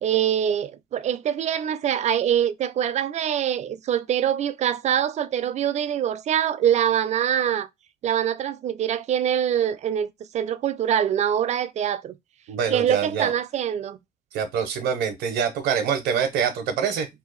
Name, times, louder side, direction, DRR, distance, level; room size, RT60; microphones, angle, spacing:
voice 1, 0.0-7.7 8.0-12.2 12.7-14.0, right 9 dB, 40° right, 0.4 m, -24 dB
voice 2, 12.5-13.3 14.3-17.1, right 7 dB, 80° right, 0.6 m, -25 dB
2.7 x 2.3 x 3.8 m
cardioid pair, 110°, 17 cm